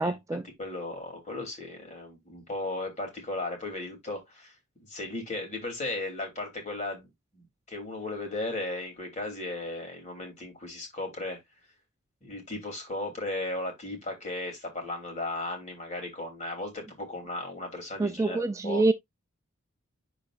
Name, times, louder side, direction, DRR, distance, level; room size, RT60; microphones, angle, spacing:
voice 1, 0.0-0.4 18.0-18.9, right 2 dB, 15° right, 0.3 m, -26 dB
voice 2, 0.6-7.1 7.3-11.4 12.2-18.8, left 2 dB, 35° left, 2.9 m, -36 dB
10.5 x 4.1 x 2.4 m
head